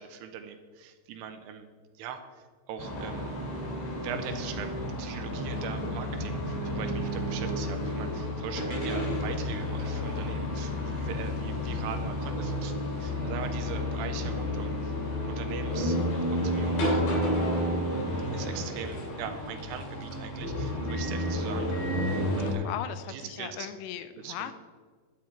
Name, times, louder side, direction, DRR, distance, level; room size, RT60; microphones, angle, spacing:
voice 1, 0.0-1.7 2.0-3.4 4.0-14.9 15.3-17.4 18.3-22.8 23.1-23.7 24.2-24.5, right 7 dB, 80° right, 7 dB, 2.7 m, -41 dB
sound 1, 2.8-22.5, left 1 dB, 70° left, 5.1 m, -31 dB
voice 2, 22.6-24.5, left 11 dB, 90° left, 10 dB, 3.0 m, -37 dB
12.0 x 8.7 x 4.5 m, 1.5 s
omnidirectional pair, 5.0 m